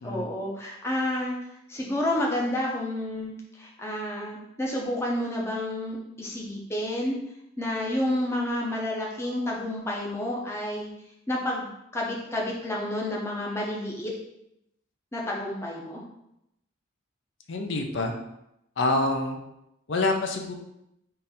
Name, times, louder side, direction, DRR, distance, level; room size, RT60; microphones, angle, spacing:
voice 1, 0.0-1.4 1.7-7.2 7.6-10.9 11.3-14.1 15.1-16.0, left 1 dB, 10° left, -3 dB, 0.6 m, -30 dB
voice 2, 17.5-18.1 18.8-19.4 19.9-20.5, left 2 dB, 60° left, 3 dB, 0.5 m, -26 dB
3.8 x 2.6 x 4.2 m, 0.83 s
head